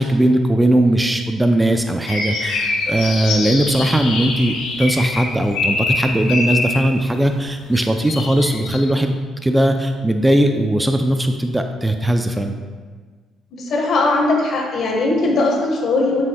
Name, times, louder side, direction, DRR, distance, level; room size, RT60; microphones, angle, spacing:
voice 1, 0.0-9.2 9.4-12.6, right 1 dB, 10° right, 5 dB, 0.5 m, -18 dB
sound 1, 2.1-6.9 7.7-8.8, left 3 dB, 80° left, 1.4 m, -24 dB
voice 2, 13.5-16.2, left 2 dB, 65° left, 0 dB, 1.5 m, -19 dB
7.5 x 6.2 x 2.3 m, 1.5 s
supercardioid pair, 70°, 0 cm